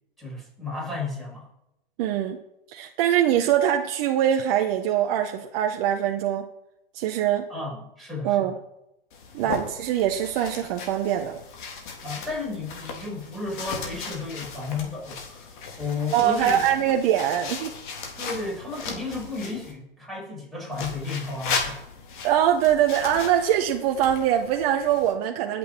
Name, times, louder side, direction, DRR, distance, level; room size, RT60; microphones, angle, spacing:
voice 1, 0.2-1.5 7.5-8.5 9.4-9.5 12.0-16.6 18.2-21.8, left 3 dB, ahead, -5 dB, 6.7 m, -33 dB
voice 2, 2.0-2.4 2.7-6.5 6.9-7.5 8.2-8.6 9.3-11.4 16.1-17.7 22.2-25.6, right 10 dB, 40° right, 3 dB, 1.0 m, -23 dB
sound 1, 9.1-19.7 20.7-25.1, left 5 dB, 55° left, 3.5 m, -37 dB
21.0 x 8.2 x 4.4 m, 0.85 s
hypercardioid pair, 125°, 29 cm